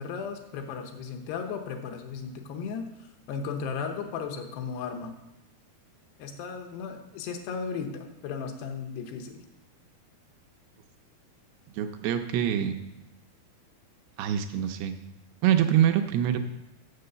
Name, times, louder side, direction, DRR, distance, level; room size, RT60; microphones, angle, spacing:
voice 1, 0.0-2.9 3.3-5.1 6.2-9.4, left 6 dB, 80° left, 4 dB, 2.9 m, -35 dB
voice 2, 11.7-12.8 14.2-15.0 15.4-16.4, right 10 dB, 80° right, 6 dB, 2.5 m, -25 dB
7.8 x 6.9 x 6.7 m, 0.94 s
omnidirectional pair, 4.8 m